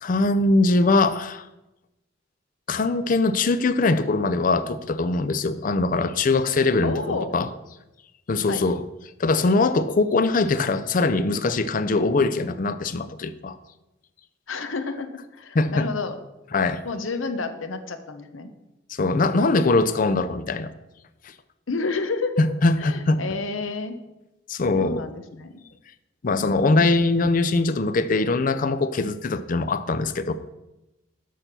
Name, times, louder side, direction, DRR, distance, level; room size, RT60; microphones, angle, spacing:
voice 1, 0.0-1.5 2.7-7.5 8.3-8.8 9.2-13.6 15.5-15.9 16.5-16.8 18.9-20.7 22.4-23.2 24.5-25.0 26.2-30.3, left 3 dB, 45° left, 12 dB, 0.5 m, -22 dB
voice 2, 6.8-7.3 8.5-8.6 14.5-16.1 16.8-18.5 21.7-22.4 22.8-24.0 24.8-25.6 26.4-27.0, left 3 dB, 85° left, 9 dB, 0.8 m, -30 dB
6.6 x 6.4 x 5.8 m, 0.98 s
head